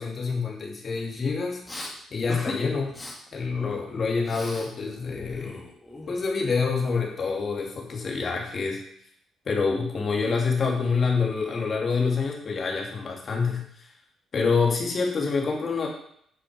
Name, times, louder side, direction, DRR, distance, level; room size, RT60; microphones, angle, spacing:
voice 1, 0.0-1.6 2.1-2.9 3.3-5.6 6.1-8.8 9.4-13.9 14.3-15.9, left 4 dB, 45° left, -1 dB, 3.2 m, -27 dB
Respiratory sounds, 1.7-1.9 2.3-2.6 2.9-3.1 3.5-4.7 5.0-6.4, left 2 dB, 15° left, 2.6 m, -38 dB
9.9 x 7.0 x 5.4 m, 0.68 s
cardioid pair, 90°, 0 cm